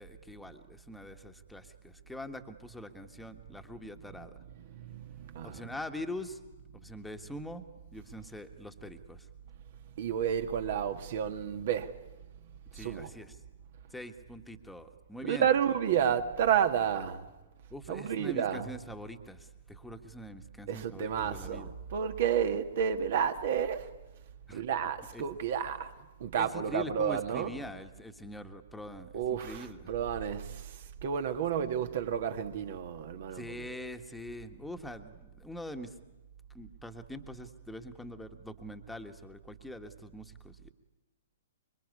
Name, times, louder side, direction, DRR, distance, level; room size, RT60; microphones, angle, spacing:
voice 1, 0.0-4.3 5.4-6.4 6.8-7.6 7.9-9.3 12.7-13.4 13.9-15.5 17.7-21.7 24.5-24.6 25.1-25.2 26.4-29.9 33.3-35.9 36.5-40.7, left 1 dB, 5° left, 1.6 m, -43 dB
voice 2, 4.1-5.7 10.0-11.9 12.7-13.1 15.2-17.3 17.9-18.7 20.7-23.9 24.5-25.9 26.2-27.6 29.1-33.7, right 8 dB, 45° right, 1.9 m, -31 dB
26.0 x 23.5 x 9.7 m
figure-of-eight pair, 115°, 0 cm